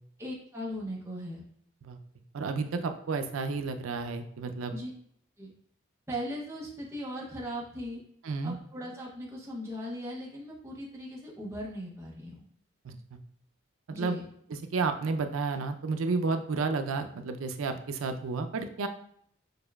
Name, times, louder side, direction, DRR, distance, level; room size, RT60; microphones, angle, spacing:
voice 1, 0.2-1.4 4.7-4.9 5.4-5.5 6.1-8.0 8.4-12.5 13.9-14.2, equal, 15° right, -4 dB, 0.6 m, -38 dB
voice 2, 2.3-4.7 8.3-8.5 12.8-12.9 13.9-14.2 14.7-18.9, right 4 dB, 90° right, 7 dB, 0.4 m, -31 dB
6.5 x 2.2 x 2.2 m, 0.67 s
head